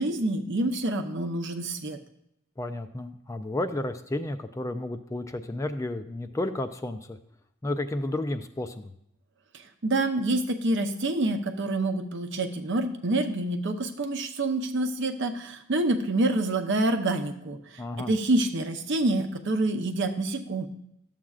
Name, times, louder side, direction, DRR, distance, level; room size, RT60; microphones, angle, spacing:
voice 1, 0.0-2.0 9.8-20.7, right 2 dB, 60° right, 5 dB, 0.7 m, -27 dB
voice 2, 2.6-7.2 7.6-8.9 17.8-18.1, left 1 dB, 15° left, 9 dB, 0.3 m, -32 dB
12.0 x 7.4 x 2.4 m, 0.77 s
head